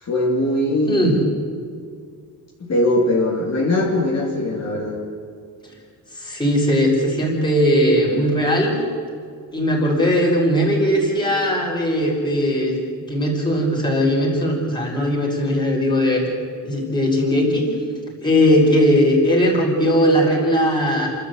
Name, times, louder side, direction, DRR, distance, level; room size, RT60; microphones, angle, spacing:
voice 1, 0.0-1.3 2.6-5.0, left 1 dB, 45° left, -4 dB, 3.4 m, -21 dB
voice 2, 0.9-1.2 6.1-8.7 9.5-12.8 13.1-16.2 16.6-17.6 18.2-21.1, equal, 10° left, -2 dB, 5.4 m, -18 dB
29.0 x 13.0 x 8.2 m, 2.1 s
wide cardioid pair, 140°, 37 cm